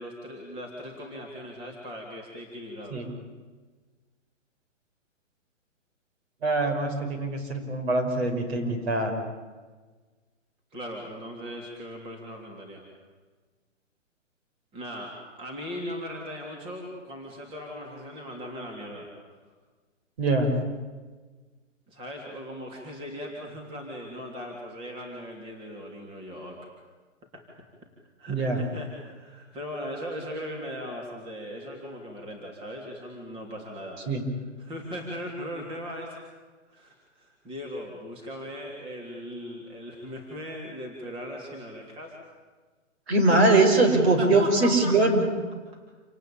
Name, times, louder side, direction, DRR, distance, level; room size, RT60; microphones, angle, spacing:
voice 1, 0.0-3.0 10.7-12.9 14.7-19.1 21.9-26.6 27.3-27.4 28.2-34.0 34.6-36.2 36.7-42.2 43.8-45.0, equal, 15° right, 0 dB, 3.3 m, -38 dB
voice 2, 6.4-9.2 20.2-20.5 28.3-28.6 34.1-34.2 43.1-45.2, right 2 dB, 55° right, 4 dB, 5.8 m, -22 dB
28.0 x 18.5 x 8.8 m, 1.4 s
hypercardioid pair, 160°, 38 cm